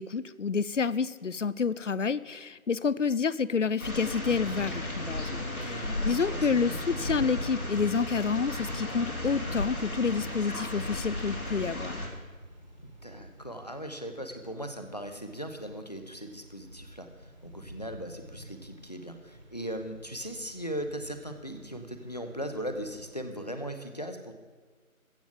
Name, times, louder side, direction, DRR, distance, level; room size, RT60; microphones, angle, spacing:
voice 1, 0.0-12.0, left 5 dB, 60° left, 18 dB, 0.5 m, -29 dB
sound 1, 3.8-12.1, left 1 dB, 80° left, 3.3 m, -35 dB
Thunder / Rain, 4.2-23.3, equal, 30° right, 1.4 m, -45 dB
voice 2, 5.5-6.8 13.0-24.3, equal, 30° left, 7 dB, 0.9 m, -39 dB
14.5 x 7.1 x 7.7 m, 1.4 s
figure-of-eight pair, 170°, 42 cm